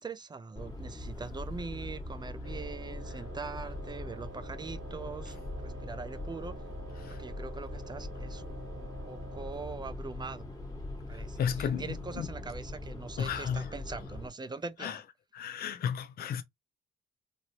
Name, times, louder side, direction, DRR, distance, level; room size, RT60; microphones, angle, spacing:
voice 1, 0.0-6.6 7.1-10.4 11.1-15.0, right 4 dB, 20° right, 0.5 m, -42 dB
sound 1, 0.5-14.3, left 1 dB, 15° left, 1.4 m, -41 dB
Wind instrument woodwind instrument, 2.4-9.8, right 4 dB, 75° right, 1.1 m, -50 dB
voice 2, 11.1-11.8 12.2-12.3 13.2-13.7 14.8-15.0 15.3-16.4, left 8 dB, 50° left, 0.5 m, -33 dB
3.1 x 2.6 x 2.8 m
cardioid pair, 90°, 20 cm